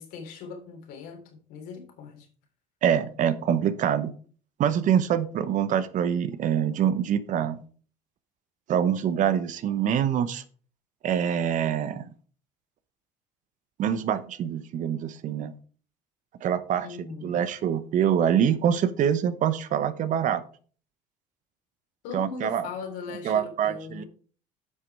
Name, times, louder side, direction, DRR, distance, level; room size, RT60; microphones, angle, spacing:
voice 1, 0.0-2.3 16.8-17.4 22.0-24.1, left 5 dB, 75° left, 3.3 m, -39 dB
voice 2, 2.8-4.1 4.6-7.6 8.7-10.4 11.0-12.1 13.8-15.5 16.4-16.9 17.2-20.4 22.1-22.7 23.2-24.0, right 9 dB, 55° right, 1.0 m, -25 dB
9.4 x 6.1 x 4.7 m
supercardioid pair, 80°, 16 cm